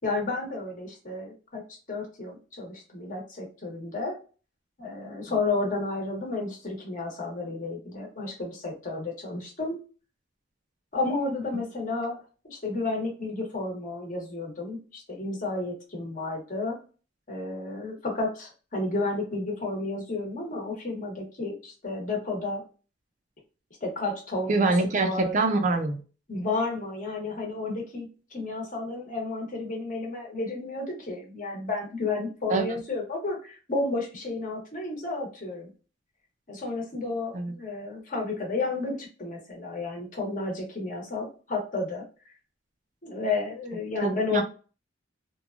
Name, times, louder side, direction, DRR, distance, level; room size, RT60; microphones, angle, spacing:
voice 1, 0.0-1.6 1.9-4.1 4.8-9.8 10.9-12.2 12.4-16.8 17.3-22.6 23.8-24.7 25.0-25.4 26.3-35.7 36.5-42.0 43.0-44.4, left 3 dB, 40° left, 0 dB, 1.0 m, -32 dB
voice 2, 24.5-26.0 32.5-32.8 37.3-37.5 44.0-44.4, right 3 dB, 40° right, 5 dB, 0.5 m, -25 dB
2.9 x 2.2 x 2.4 m, 0.37 s
head